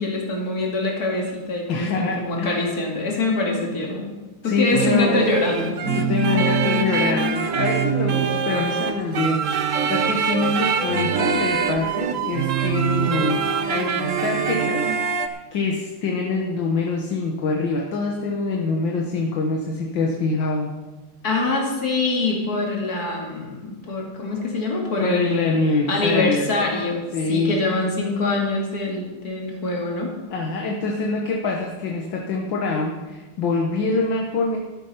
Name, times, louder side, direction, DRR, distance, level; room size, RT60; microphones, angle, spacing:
voice 1, 0.0-4.1 4.4-5.8 21.2-25.5 25.9-27.0 27.3-30.1, left 2 dB, 45° left, 0 dB, 3.0 m, -24 dB
voice 2, 1.7-2.7 4.4-5.3 5.9-20.7 25.0-26.5 27.1-27.6 30.3-34.6, left 3 dB, 65° left, 0 dB, 1.9 m, -25 dB
sound 1, 4.7-15.3, right 6 dB, 60° right, 0.8 m, -23 dB
12.5 x 10.0 x 5.7 m, 1.2 s
omnidirectional pair, 2.3 m